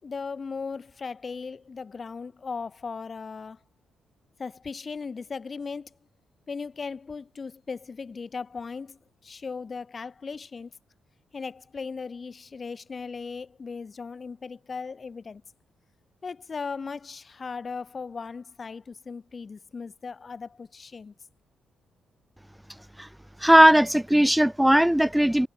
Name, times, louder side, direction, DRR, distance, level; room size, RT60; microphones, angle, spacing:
voice 1, 0.0-3.6 4.4-5.9 6.5-10.7 11.3-15.4 16.2-21.1, left 5 dB, 35° left, 3.8 m, -37 dB
voice 2, 23.4-25.5, equal, 5° right, 1.7 m, -18 dB
cardioid pair, 100°, 0 cm